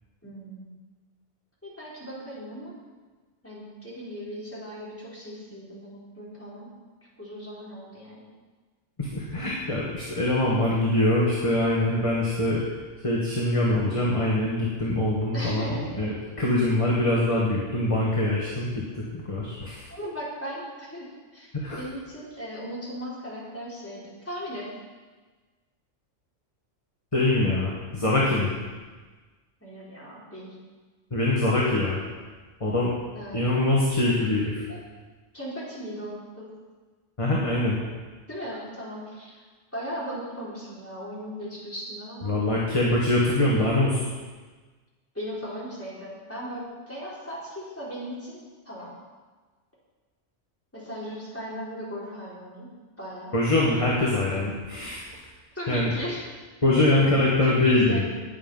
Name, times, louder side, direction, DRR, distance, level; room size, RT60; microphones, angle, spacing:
voice 1, 0.2-0.7 1.6-2.7 3.4-6.7 7.2-8.2 15.3-15.9 19.9-21.5 21.8-24.7 29.6-30.5 33.1-33.5 34.7-34.8 35.3-36.5 38.3-39.4 39.7-42.4 45.1-48.9 50.7-52.7 53.0-53.3 55.5-56.2 56.7-58.0, equal, 10° left, -7 dB, 4.4 m, -37 dB
voice 2, 9.0-12.6 13.0-16.1 16.4-19.9 21.5-21.8 27.1-28.6 31.1-32.0 32.6-32.9 33.3-34.6 37.2-37.8 42.3-44.0 53.3-55.0 55.7-55.9 56.6-58.0, left 1 dB, 25° left, -4 dB, 2.0 m, -23 dB
19.0 x 7.5 x 5.7 m, 1.3 s
omnidirectional pair, 1.3 m